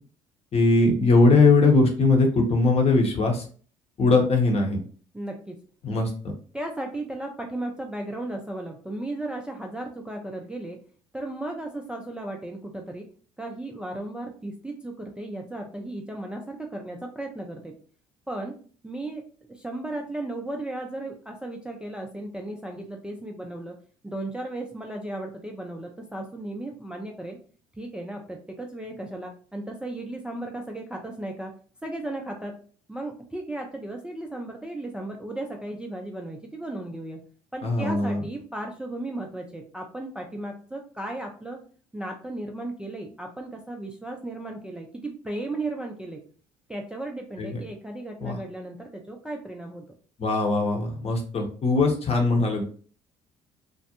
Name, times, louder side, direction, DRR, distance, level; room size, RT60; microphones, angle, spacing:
voice 1, 0.5-3.4 4.0-4.8 5.8-6.1 37.6-38.2 47.4-47.6 48.2-48.4 50.2-52.6, left 3 dB, 35° left, 2 dB, 0.8 m, -20 dB
voice 2, 5.1-5.6 6.5-10.8 11.1-13.1 13.4-17.8 18.3-18.6 18.8-23.8 24.0-27.4 27.7-31.5 31.8-32.5 32.9-37.2 37.5-41.6 41.9-46.2 46.7-49.9, right 1 dB, 5° right, 1 dB, 0.4 m, -35 dB
2.4 x 2.1 x 2.8 m, 0.42 s
hypercardioid pair, 55°, 17 cm